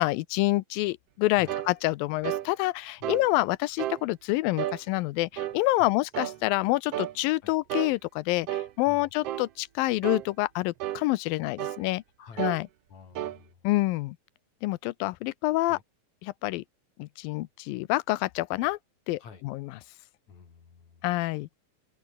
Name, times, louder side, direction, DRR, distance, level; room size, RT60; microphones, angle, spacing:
voice 1, 0.0-12.0 12.4-12.7 13.6-14.2 14.6-15.8 16.2-16.6 17.0-18.8 19.1-19.8 21.0-21.5, left 19 dB, 80° left, 2.4 m, -27 dB
sound 1, 1.5-1.7 2.2-2.5 3.0-3.3 3.8-4.0 4.6-4.8 5.4-5.6 6.1-6.4 6.9-7.1 7.7-7.9 8.5-8.7 9.2-9.5 10.0-10.3 10.8-11.0 11.6-11.8 12.4-12.6 13.1-13.4, right 13 dB, 90° right, 1.3 m, -32 dB
voice 2, 12.2-12.5 12.9-13.6 15.7-15.8 19.2-19.4 20.3-21.1, left 6 dB, 50° left, 5.1 m, -50 dB
omnidirectional pair, 4.1 m